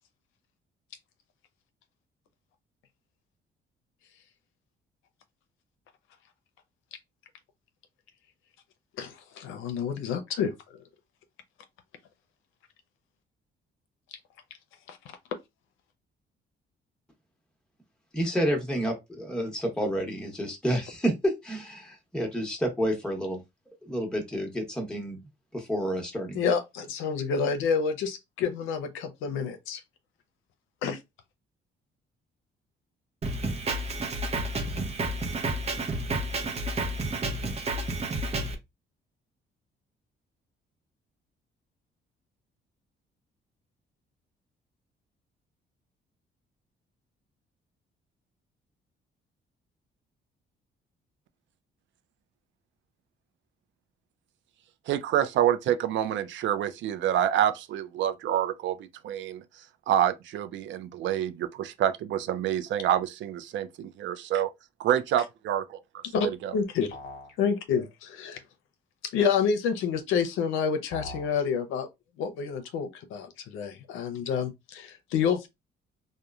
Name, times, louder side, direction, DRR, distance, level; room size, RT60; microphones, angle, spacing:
voice 1, 9.0-10.8 14.9-15.0 26.3-29.8 30.8-31.0 66.1-67.0 67.4-68.4 69.0-71.9 72.2-75.5, left 6 dB, 90° left, 0.5 m, -29 dB
voice 2, 18.1-23.4 23.8-25.2 25.5-26.4, equal, 5° left, 0.9 m, -29 dB
Drum kit, 33.2-38.5, right 2 dB, 30° right, 0.6 m, -30 dB
voice 3, 54.9-59.4 59.9-64.5 64.8-65.8 66.2-66.5, right 10 dB, 70° right, 0.4 m, -27 dB
sound 1, 66.9-67.4 70.9-71.4, left 2 dB, 50° left, 0.8 m, -41 dB
2.9 x 2.1 x 2.3 m
cardioid pair, 90°, 20 cm